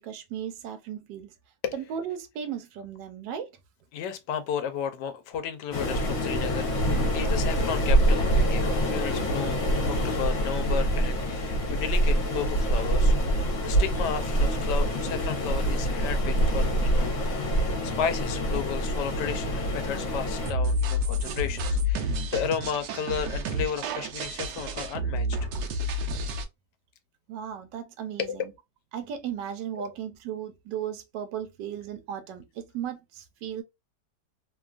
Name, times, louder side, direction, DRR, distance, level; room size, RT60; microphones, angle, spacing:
voice 1, 0.0-1.3 1.7-3.5 27.3-28.5 28.9-33.6, right 9 dB, 85° right, 1.3 m, -36 dB
voice 2, 3.9-17.4 18.0-25.3 28.2-28.4 29.8-29.9, left 8 dB, 80° left, 1.2 m, -33 dB
Waves surf, 5.7-20.5, right 1 dB, 55° left, 1.2 m, -25 dB
sound 1, 20.4-26.4, left 1 dB, 70° right, 1.1 m, -29 dB
3.1 x 2.3 x 2.4 m
omnidirectional pair, 1.8 m